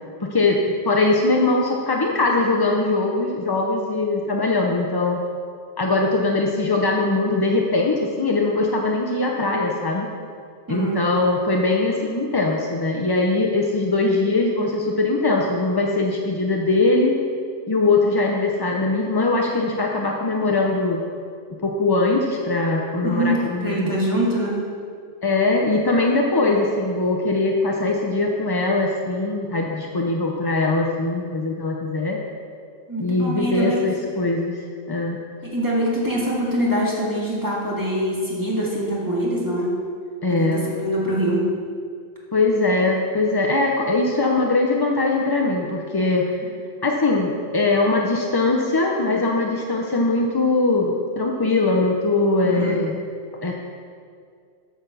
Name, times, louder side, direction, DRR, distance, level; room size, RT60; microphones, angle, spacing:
voice 1, 0.2-5.2 5.8-10.1 10.7-17.1 17.7-21.0 21.6-24.0 25.2-32.2 33.0-34.6 34.9-35.2 40.2-40.7 42.3-46.3 46.8-53.0 53.4-53.5, left 2 dB, 30° left, 0 dB, 0.4 m, -21 dB
voice 2, 23.0-24.6 32.9-33.9 35.4-39.7 40.3-41.5 52.4-52.7, equal, 15° right, -5 dB, 1.9 m, -24 dB
8.4 x 6.1 x 6.8 m, 2.2 s
omnidirectional pair, 1.4 m